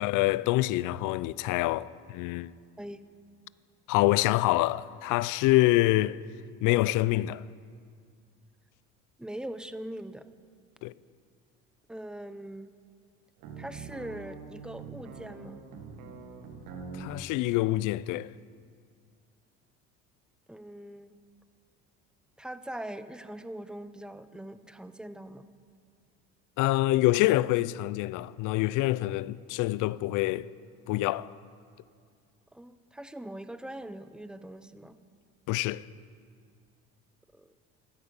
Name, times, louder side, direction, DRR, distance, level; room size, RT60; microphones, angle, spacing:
voice 1, 0.0-2.5 3.9-6.2 6.6-7.4 10.8-10.9 16.9-18.3 26.6-30.5 30.9-31.3 35.5-35.8, left 17 dB, 65° left, 0.5 m, -26 dB
voice 2, 9.2-10.3 11.9-12.7 13.6-15.6 20.5-21.2 22.4-25.5 32.5-35.0 37.3-37.5, right 1 dB, ahead, 0.7 m, -42 dB
sound 1, 13.4-17.2, right 4 dB, 70° right, 1.6 m, -44 dB
13.0 x 9.7 x 8.0 m
supercardioid pair, 75°, 34 cm